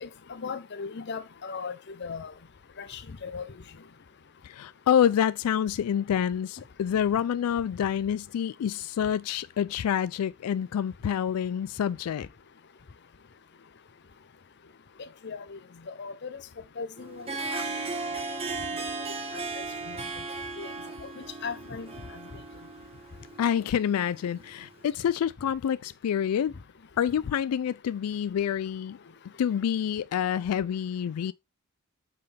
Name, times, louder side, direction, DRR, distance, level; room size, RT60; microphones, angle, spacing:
voice 1, 0.0-2.3 2.8-3.5 15.0-15.6 15.9-16.4 16.8-17.6 19.6-20.0 20.6-20.7 21.4-21.9, left 5 dB, 50° left, 0.6 m, -38 dB
voice 2, 4.4-12.3 23.4-26.6 27.0-29.0 29.4-31.3, left 9 dB, 90° left, 0.3 m, -27 dB
Harp, 17.0-24.7, right 3 dB, 25° right, 1.1 m, -36 dB
8.3 x 4.6 x 3.3 m
head